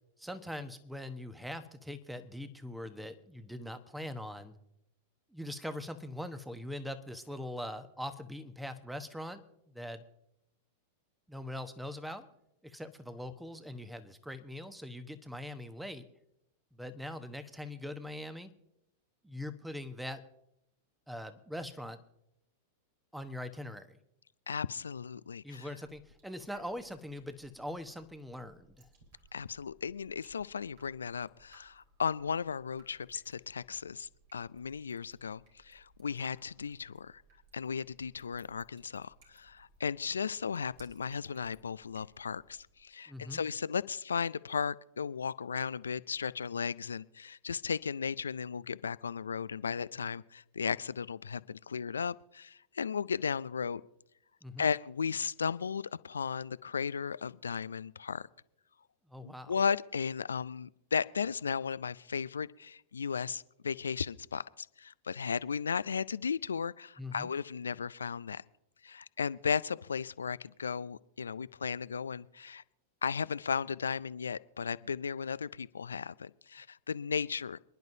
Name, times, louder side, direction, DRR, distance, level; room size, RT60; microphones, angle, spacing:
voice 1, 0.2-4.5 5.3-10.0 11.3-12.3 12.6-16.1 16.7-18.5 19.2-20.2 21.1-22.0 23.1-24.0 25.4-28.9 43.1-43.4 54.4-54.7 59.1-59.5 67.0-67.3, left 1 dB, 5° right, 10 dB, 1.1 m, -42 dB
voice 2, 24.5-25.7 29.3-37.2 37.5-53.8 54.6-58.3 59.2-68.4 68.8-72.6 73.0-77.6, left 6 dB, 85° left, 19 dB, 0.4 m, -35 dB
Drip, 25.8-42.8, right 2 dB, 60° right, 3.6 m, -65 dB
27.5 x 10.5 x 2.7 m, 0.79 s
hypercardioid pair, 95°, 0 cm